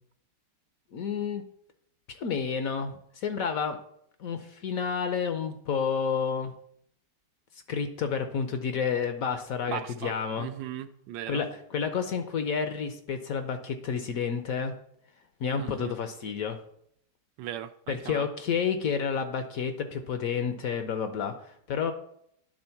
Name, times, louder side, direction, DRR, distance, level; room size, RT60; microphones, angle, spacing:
voice 1, 0.9-1.4 2.1-3.8 4.2-6.5 7.7-10.5 11.3-14.7 15.4-16.6 17.9-21.9, left 6 dB, 65° left, 8 dB, 1.0 m, -30 dB
voice 2, 9.7-11.4 15.6-15.9 17.4-18.2, right 11 dB, 85° right, 10 dB, 1.3 m, -38 dB
10.5 x 3.8 x 5.7 m, 0.69 s
omnidirectional pair, 2.0 m